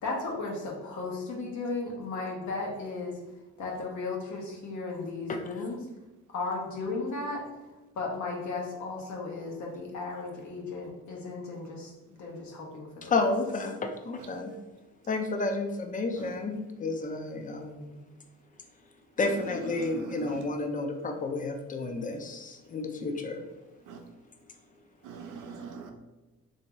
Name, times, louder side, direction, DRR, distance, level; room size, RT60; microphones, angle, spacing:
voice 1, 0.0-3.2 3.6-5.8 6.3-7.4 7.9-13.3, left 3 dB, 70° left, -1 dB, 1.1 m, -35 dB
voice 2, 13.0-14.5 15.1-18.0 19.2-23.4, left 3 dB, 25° left, 5 dB, 0.5 m, -31 dB
voice 3, 19.2-20.5 23.8-24.1 25.0-25.9, right 6 dB, 85° right, 4 dB, 0.6 m, -43 dB
3.4 x 2.7 x 3.0 m, 1.1 s
cardioid pair, 90°, 30 cm